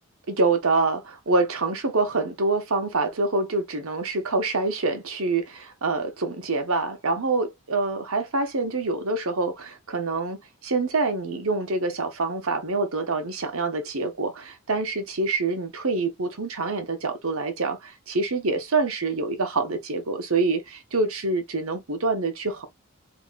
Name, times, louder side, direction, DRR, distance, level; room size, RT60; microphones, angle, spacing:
voice 1, 0.3-22.7, right 3 dB, 75° right, 1.1 m, -26 dB
4.8 x 3.1 x 2.5 m
head